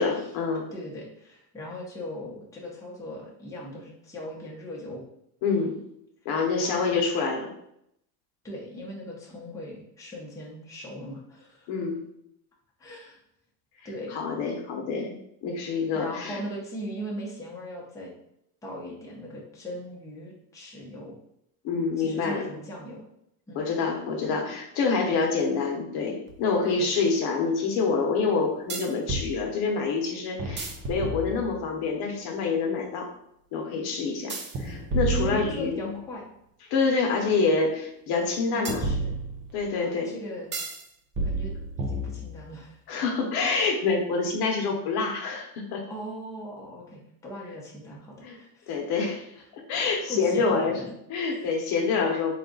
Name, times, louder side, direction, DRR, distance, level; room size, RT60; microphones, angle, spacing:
voice 1, 0.0-0.7 5.4-5.8 6.2-7.5 11.7-12.0 14.1-15.2 15.4-16.4 21.6-22.4 23.5-33.1 33.5-35.9 36.7-38.8 39.5-40.1 42.9-45.8 48.2-48.4 48.7-49.2 49.5-50.8 51.1-52.3, left 4 dB, 55° left, 1 dB, 0.9 m, -27 dB
voice 2, 0.7-5.0 6.6-7.0 8.4-11.7 12.8-13.2 13.8-14.2 15.9-18.1 18.6-21.2 22.0-23.1 23.5-23.6 26.6-27.0 35.1-36.2 38.5-39.1 39.8-40.5 41.2-42.8 43.4-43.5 45.9-48.7 49.7-50.9 51.2-51.5, equal, 5° left, -4 dB, 0.8 m, -39 dB
sound 1, 26.3-26.4 28.7-29.3 30.4-31.7 34.3-36.0 38.6-39.6 40.5-40.8 41.1-42.5, right 2 dB, 25° right, 0.5 m, -31 dB
3.8 x 2.4 x 3.8 m, 0.76 s
cardioid pair, 135°, 47 cm